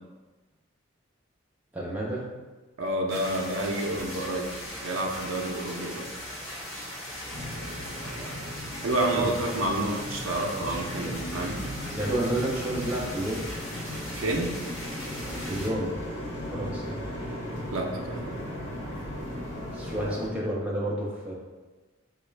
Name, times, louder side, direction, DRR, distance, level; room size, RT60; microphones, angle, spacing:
voice 1, 1.7-2.2 9.1-9.3 10.6-10.8 11.9-13.5 15.5-15.9 16.5-16.9 19.7-21.3, right 1 dB, 5° right, -5 dB, 0.5 m, -30 dB
voice 2, 2.8-4.5 4.8-6.1 8.8-11.6 14.1-14.5 17.7-18.4, right 1 dB, 85° right, 0 dB, 0.5 m, -29 dB
sound 1, 3.1-15.7, equal, 25° left, 1.3 m, -39 dB
sound 2, 7.3-20.3, equal, 65° left, 1.2 m, -37 dB
4.1 x 2.3 x 3.2 m, 1.3 s
head